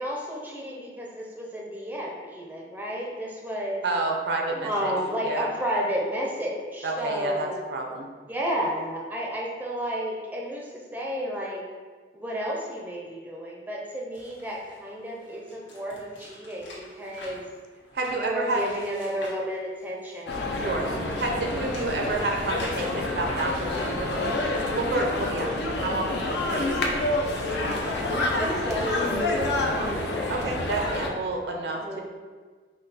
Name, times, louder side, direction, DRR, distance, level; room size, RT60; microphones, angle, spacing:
voice 1, 0.0-3.8 4.6-7.6 8.3-11.6 12.1-17.4 18.1-20.4 20.7-21.0 26.4-26.8 28.1-30.5 31.8-32.0, equal, 10° right, -3 dB, 0.5 m, -32 dB
voice 2, 3.8-4.9 5.2-5.5 6.8-8.1 17.9-18.6 20.5-20.9 21.2-24.2 24.7-26.8 30.3-32.0, right 2 dB, 65° right, 1 dB, 0.6 m, -29 dB
sound 1, 14.1-20.3 20.7-24.8 26.1-27.5 27.9-28.2 28.8-28.9, left 1 dB, 90° left, 1.4 m, -44 dB
sound 2, 20.3-31.1, left 2 dB, 70° left, 0.6 m, -28 dB
5.4 x 2.2 x 4.1 m, 1.5 s
head